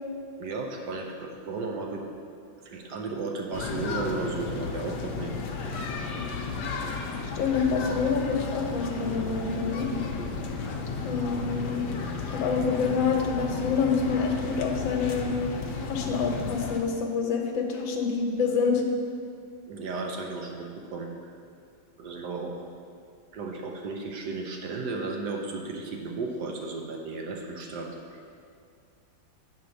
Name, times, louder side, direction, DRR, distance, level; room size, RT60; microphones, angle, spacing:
voice 1, 0.4-2.1 2.6-5.4 19.7-21.3 22.0-22.5 23.3-28.2, right 3 dB, 65° right, 2 dB, 1.2 m, -34 dB
sound 1, 3.5-16.8, left 4 dB, 65° left, 1.3 m, -33 dB
voice 2, 7.3-9.9 11.0-11.9 12.3-15.3 15.8-18.8, left 5 dB, 85° left, 3 dB, 1.6 m, -27 dB
8.8 x 4.3 x 6.3 m, 2.3 s
omnidirectional pair, 2.1 m